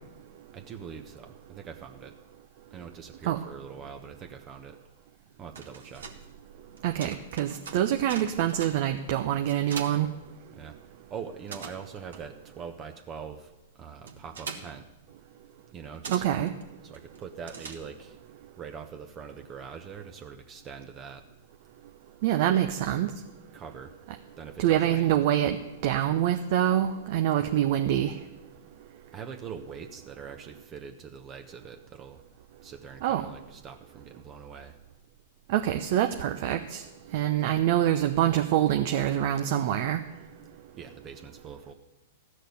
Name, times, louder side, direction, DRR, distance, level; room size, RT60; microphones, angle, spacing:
voice 1, 0.5-2.1 2.7-4.8 5.4-6.1 10.5-14.9 15.7-16.2 16.8-18.2 18.6-21.2 23.5-23.9 24.4-25.1 29.1-32.2 32.6-34.8 40.8-41.7, right 6 dB, 30° right, 5 dB, 1.1 m, -43 dB
sound 1, 5.3-10.9 11.2-18.2, right 5 dB, 80° right, 1.6 m, -44 dB
voice 2, 6.8-10.1 16.1-16.5 22.2-23.1 24.6-25.6 25.8-28.2 33.0-33.2 35.5-36.8 37.1-40.0, right 11 dB, 55° right, 6 dB, 0.8 m, -25 dB
14.0 x 6.5 x 9.5 m, 1.0 s
hypercardioid pair, 115°, 0 cm